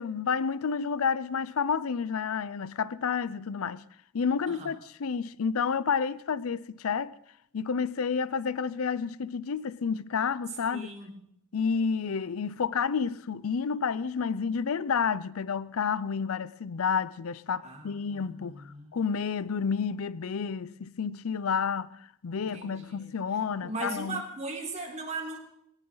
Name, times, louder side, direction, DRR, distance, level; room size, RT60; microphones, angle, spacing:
voice 1, 0.0-3.8 4.1-7.1 7.5-10.9 11.5-18.6 18.9-24.2, left 6 dB, 70° left, 0.5 m, -30 dB
voice 2, 10.7-11.1 17.6-18.9 22.4-23.1 23.6-25.4, right 3 dB, 35° right, 3.8 m, -38 dB
20.0 x 18.0 x 3.9 m
head